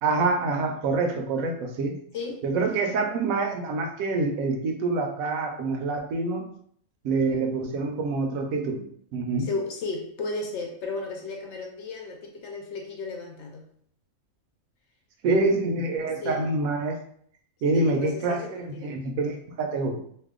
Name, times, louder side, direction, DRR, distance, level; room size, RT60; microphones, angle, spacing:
voice 1, 0.0-1.9 2.4-6.4 7.0-8.8 9.1-9.5 15.2-17.0 17.6-20.0, right 3 dB, 85° right, 4 dB, 1.0 m, -26 dB
voice 2, 9.4-13.7 16.2-16.5 17.7-18.9, left 3 dB, 65° left, 1 dB, 0.8 m, -34 dB
2.7 x 2.1 x 3.5 m, 0.64 s
omnidirectional pair, 1.4 m